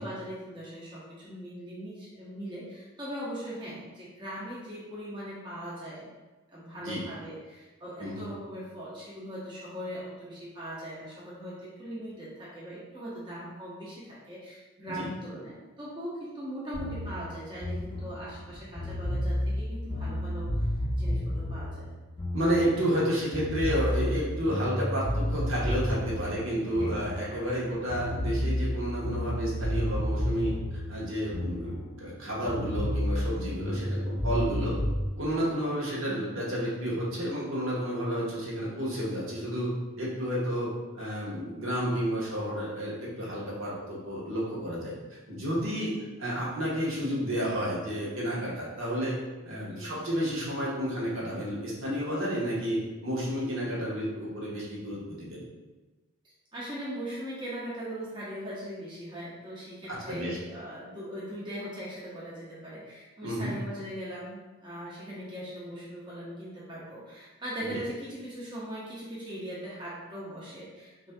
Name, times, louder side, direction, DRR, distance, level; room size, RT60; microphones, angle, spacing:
voice 1, 0.0-6.1 6.5-20.5 21.0-21.9 26.8-26.9 27.3-27.4 36.1-36.4 49.7-50.0 56.5-71.1, equal, 20° right, -8 dB, 0.8 m, -40 dB
sound 1, 16.7-23.0 23.3-27.6 27.9-32.2 32.5-35.0, left 1 dB, 20° left, 0.7 m, -31 dB
voice 2, 22.3-30.5 30.9-34.8 35.2-39.7 39.9-49.1 49.4-55.4 59.9-60.4 63.2-63.5 67.6-67.8, equal, 65° right, -6 dB, 1.2 m, -31 dB
6.0 x 2.7 x 2.2 m, 1.2 s
head